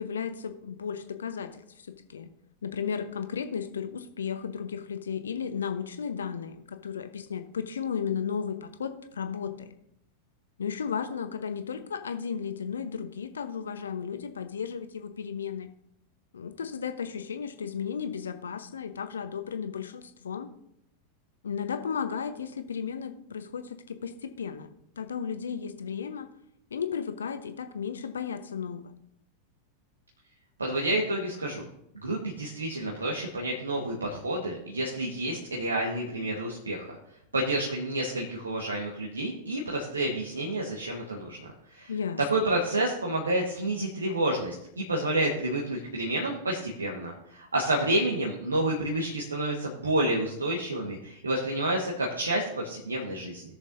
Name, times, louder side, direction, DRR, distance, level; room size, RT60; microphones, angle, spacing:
voice 1, 0.0-1.6 2.1-2.3 2.6-9.8 10.6-15.7 16.3-20.5 21.4-24.7 25.0-26.3 26.7-28.9 41.9-42.2, left 7 dB, 70° left, 9 dB, 0.8 m, -34 dB
voice 2, 30.6-31.6 32.0-36.9 37.3-41.9 42.3-53.4, right 1 dB, 75° right, -2 dB, 1.4 m, -29 dB
17.5 x 6.5 x 2.7 m, 0.76 s
figure-of-eight pair, 90°, 0 cm